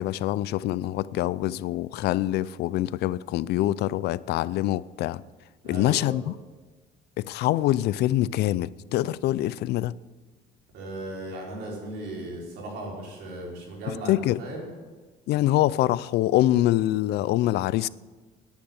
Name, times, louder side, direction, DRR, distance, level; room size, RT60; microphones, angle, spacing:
voice 1, 0.0-5.2 5.6-6.3 7.2-9.9 13.9-14.4 15.3-17.9, left 15 dB, 75° left, 0.4 m, -25 dB
voice 2, 5.6-6.1 10.7-14.7, right 1 dB, 80° right, 4.8 m, -36 dB
10.5 x 10.0 x 8.0 m
cardioid pair, 110°, 17 cm